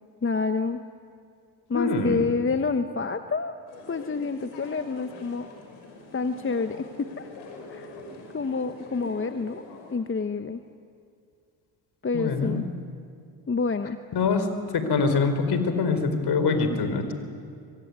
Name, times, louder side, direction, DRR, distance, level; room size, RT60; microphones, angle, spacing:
voice 1, 0.2-0.8 1.7-3.5 3.9-5.5 6.1-7.3 7.7-7.9 8.3-9.6 9.9-10.6 12.0-12.6 13.5-14.0, left 4 dB, 25° left, 9 dB, 1.2 m, -28 dB
voice 2, 1.7-2.3 12.1-12.6 14.1-14.5 14.7-17.1, left 4 dB, 55° left, 8 dB, 4.4 m, -24 dB
sound 1, 3.7-9.9, left 3 dB, 85° left, 5.9 m, -44 dB
24.5 x 23.5 x 9.6 m, 2.4 s
supercardioid pair, 65°, 47 cm